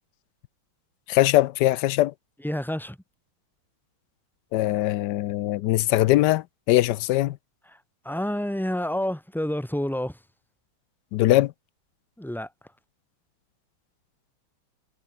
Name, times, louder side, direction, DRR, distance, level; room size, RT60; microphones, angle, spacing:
voice 1, 1.1-2.1 4.5-7.4 11.1-11.5, left 16 dB, 80° left, 1.0 m, -21 dB
voice 2, 2.4-3.0 7.7-7.8 8.0-10.2 12.2-12.5, left 1 dB, ahead, 2.4 m, -28 dB
omnidirectional pair, 2.3 m